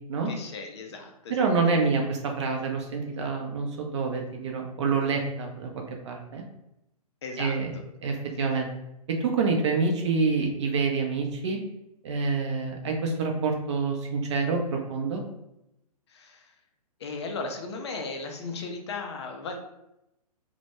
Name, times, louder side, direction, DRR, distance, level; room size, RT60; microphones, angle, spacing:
voice 1, 0.3-1.9 7.2-7.8 16.1-16.6 17.0-19.6, left 3 dB, 45° left, 3 dB, 0.4 m, -37 dB
voice 2, 1.3-5.7 6.0-6.4 7.4-7.7 8.0-8.7 9.1-11.6 12.0-15.2, right 4 dB, 45° right, 2 dB, 0.5 m, -27 dB
2.1 x 2.1 x 3.0 m, 0.86 s
figure-of-eight pair, 120°, 20 cm